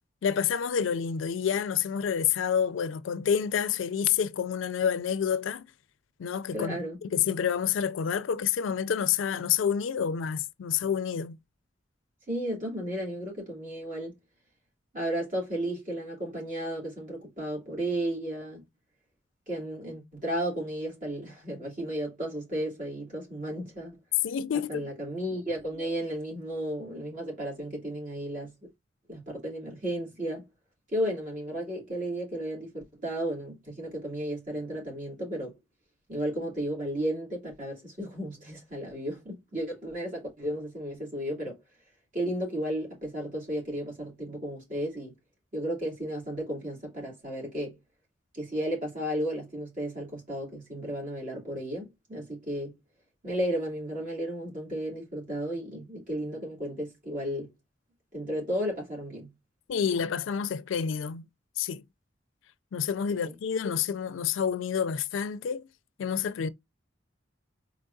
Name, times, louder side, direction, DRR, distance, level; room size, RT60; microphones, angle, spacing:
voice 1, 0.2-5.7 6.2-11.4 24.2-24.9 59.7-61.3 61.6-61.8 62.7-65.7 66.0-66.5, left 7 dB, 80° left, 0.4 m, -28 dB
voice 2, 6.5-7.0 12.3-14.1 14.9-18.6 19.5-24.0 24.7-28.7 29.1-30.5 30.9-35.6 36.1-41.6 42.1-45.2 45.5-47.8 48.3-52.8 53.2-57.5 58.1-59.3 63.1-63.4, right 1 dB, 45° right, 2.8 m, -33 dB
4.6 x 3.9 x 2.6 m
head